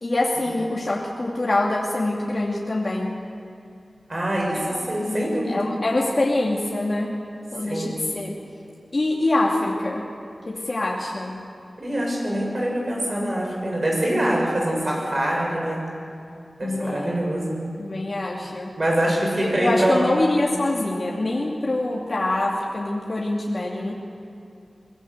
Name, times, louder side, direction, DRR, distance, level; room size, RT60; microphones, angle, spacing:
voice 1, 0.0-3.1 4.5-4.8 5.1-7.1 7.5-8.3 8.9-10.0 10.5-11.4 16.6-17.1 17.8-18.7 19.6-23.9, left 2 dB, 50° left, -3 dB, 2.4 m, -25 dB
voice 2, 4.1-5.6 7.6-8.0 11.8-15.8 16.6-17.6 18.8-20.1, right 1 dB, 45° right, -1 dB, 6.6 m, -24 dB
23.0 x 17.5 x 8.1 m, 2.6 s
wide cardioid pair, 70°, 0 cm